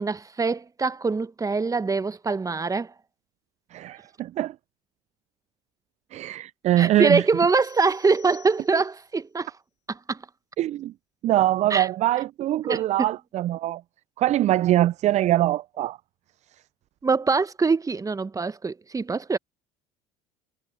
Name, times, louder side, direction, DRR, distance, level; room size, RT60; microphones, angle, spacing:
voice 1, 0.0-2.9 6.8-9.5 9.9-10.2 11.7-11.9 12.6-13.1 17.0-19.4, right 4 dB, 20° right, 1.2 m, -24 dB
voice 2, 3.7-4.5 6.1-7.2 10.6-10.9 11.2-13.8 14.2-16.0, right 14 dB, 40° right, 0.4 m, -23 dB
sound 1, 7.6-9.1, left 13 dB, 45° left, 5.9 m, -53 dB
hypercardioid pair, 65°, 17 cm